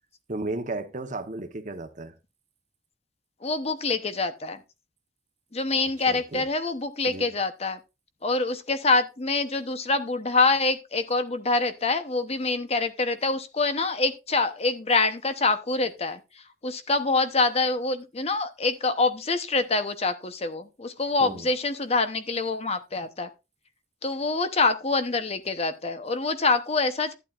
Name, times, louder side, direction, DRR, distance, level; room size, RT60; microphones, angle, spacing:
voice 1, 0.3-2.1 6.1-6.5 7.1-7.3 21.2-21.5, right 2 dB, 45° right, 1.0 m, -34 dB
voice 2, 3.4-4.6 5.5-7.8 8.2-16.2 16.6-23.3 24.0-27.1, left 3 dB, 35° left, 0.8 m, -25 dB
11.5 x 9.1 x 2.5 m
head